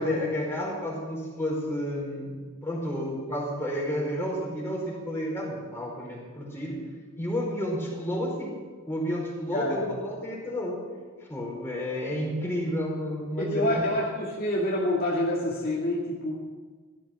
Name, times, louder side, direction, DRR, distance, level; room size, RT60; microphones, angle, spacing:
voice 1, 0.0-6.8 7.2-8.6 8.8-10.8 11.3-13.7, equal, 10° left, -3 dB, 4.8 m, -31 dB
voice 2, 9.5-9.9 13.4-16.3, left 1 dB, 45° left, -4 dB, 2.3 m, -27 dB
16.0 x 13.0 x 6.0 m, 1.4 s
head